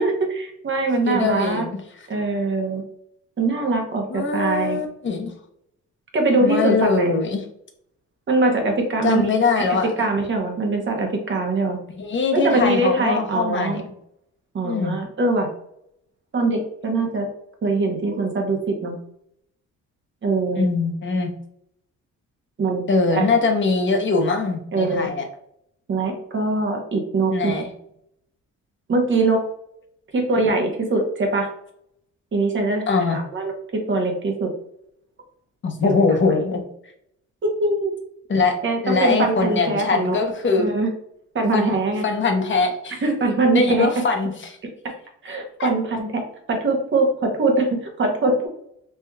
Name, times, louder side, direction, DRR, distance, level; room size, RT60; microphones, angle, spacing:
voice 1, 0.0-1.6 2.1-2.8 3.4-4.8 6.1-7.2 8.3-9.2 9.6-11.8 12.3-13.8 14.5-15.5 16.3-17.3 17.6-18.9 20.2-20.7 22.6-23.3 24.7-25.1 25.9-27.7 28.9-29.4 30.1-31.5 32.3-32.8 33.1-33.5 33.9-34.5 35.8-35.9 37.4-37.9 38.6-40.2 40.5-40.9 41.3-42.0 43.0-44.0 45.2-46.2 46.5-48.5, right 2 dB, 40° right, 2 dB, 0.9 m, -22 dB
voice 2, 1.0-1.8 4.1-5.3 6.4-7.4 9.0-9.9 11.9-13.8 14.6-15.0 20.6-21.3 22.9-25.2 27.3-27.7 32.9-33.2 35.6-36.6 38.3-38.6 38.8-40.7 41.5-41.7 42.0-43.0 43.5-44.5 45.6-45.7, left 4 dB, 40° left, 4 dB, 0.8 m, -22 dB
3.3 x 2.9 x 2.3 m, 0.72 s
cardioid pair, 90°, 30 cm